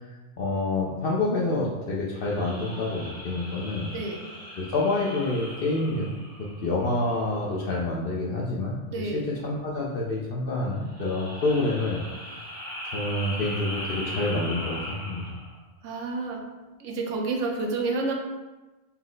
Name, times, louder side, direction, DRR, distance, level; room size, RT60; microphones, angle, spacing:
voice 1, 0.4-3.9 4.6-6.1 6.4-12.0 12.3-12.4 12.9-15.2, left 2 dB, 60° left, -4 dB, 0.6 m, -27 dB
sound 1, 2.2-7.0 10.8-15.6, equal, 10° right, 0.6 m, -39 dB
voice 2, 3.9-4.2 8.9-9.3 15.8-16.4 16.8-18.1, right 3 dB, 75° right, 1 dB, 0.9 m, -29 dB
4.2 x 2.0 x 3.7 m, 1.1 s
omnidirectional pair, 1.4 m